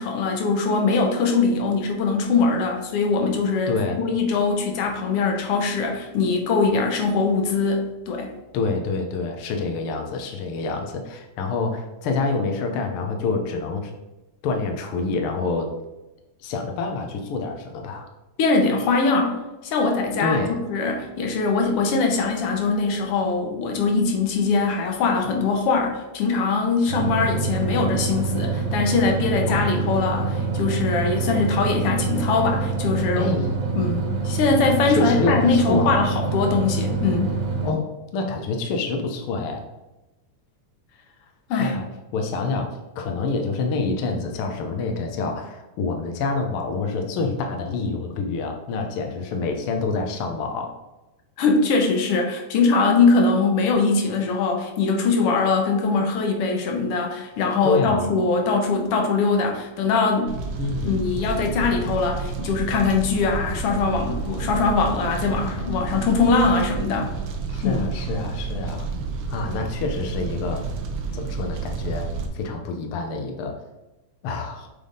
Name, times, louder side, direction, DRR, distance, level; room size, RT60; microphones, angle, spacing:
voice 1, 0.0-8.3 18.4-33.5 33.7-37.4 41.5-41.8 51.4-60.4 60.8-67.2 67.6-67.9, left 4 dB, 65° left, 2 dB, 1.6 m, -22 dB
voice 2, 3.7-4.0 8.5-13.9 14.4-15.7 16.4-18.1 20.2-20.6 29.5-29.8 33.1-33.6 34.9-36.0 37.6-39.6 41.6-41.9 42.1-50.7 57.6-58.1 60.6-61.1 67.5-68.9 69.3-70.6 71.1-72.1 72.3-73.6 74.2-74.7, left 3 dB, 90° left, 4 dB, 1.2 m, -27 dB
sound 1, 26.9-37.7, right 4 dB, 85° right, 2.5 m, -26 dB
Fire, 60.3-72.3, right 4 dB, 65° right, 1.5 m, -30 dB
8.0 x 3.5 x 3.8 m, 1.0 s
omnidirectional pair, 3.4 m